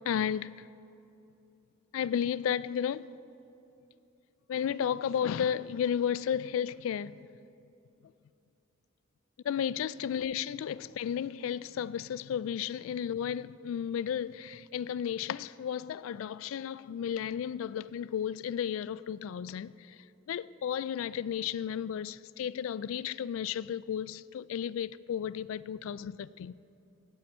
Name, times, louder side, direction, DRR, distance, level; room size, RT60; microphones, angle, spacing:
voice 1, 0.1-0.7 1.9-3.1 4.5-7.2 9.4-19.7 20.3-26.5, left 8 dB, 80° left, 0.3 m, -33 dB
17.0 x 12.0 x 4.3 m
head